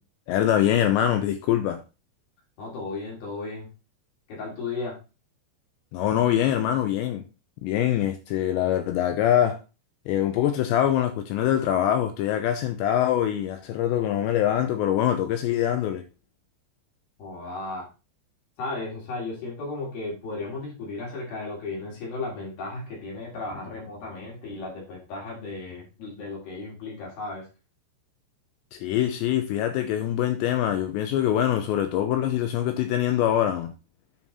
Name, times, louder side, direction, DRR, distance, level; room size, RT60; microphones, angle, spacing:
voice 1, 0.3-1.8 5.9-7.2 7.6-9.6 10.1-16.0 28.7-33.7, left 11 dB, 80° left, 2.6 m, -24 dB
voice 2, 2.6-3.7 4.3-5.0 17.2-17.9 18.6-27.5, left 3 dB, 55° left, 4.4 m, -35 dB
9.5 x 4.5 x 4.1 m
omnidirectional pair, 5.6 m